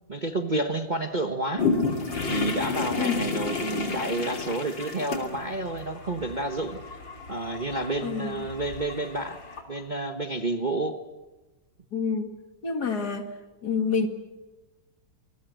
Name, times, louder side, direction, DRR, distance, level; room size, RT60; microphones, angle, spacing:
voice 1, 0.1-1.7 2.3-6.8 7.3-9.4 9.7-11.0, right 2 dB, 30° right, 7 dB, 1.2 m, -30 dB
sound 1, 1.6-9.6, left 4 dB, 75° left, 3.7 m, -31 dB
voice 2, 8.0-8.5 11.9-12.3 12.6-13.3 13.6-14.1, left 5 dB, 55° left, 8 dB, 2.6 m, -27 dB
27.5 x 20.0 x 8.1 m, 1.1 s
omnidirectional pair, 2.1 m